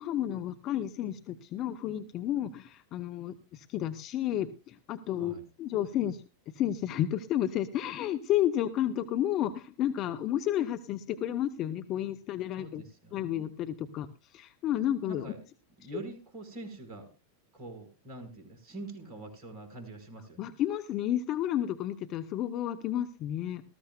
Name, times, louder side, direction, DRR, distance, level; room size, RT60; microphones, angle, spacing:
voice 1, 0.0-6.2 6.5-12.8 13.1-15.3 20.4-23.6, left 11 dB, 35° left, 9 dB, 0.8 m, -31 dB
voice 2, 12.5-13.5 15.1-15.4 15.8-17.1 17.5-20.5, right 2 dB, 35° right, 5 dB, 4.8 m, -44 dB
19.5 x 14.0 x 2.3 m, 0.31 s
figure-of-eight pair, 90°, 0 cm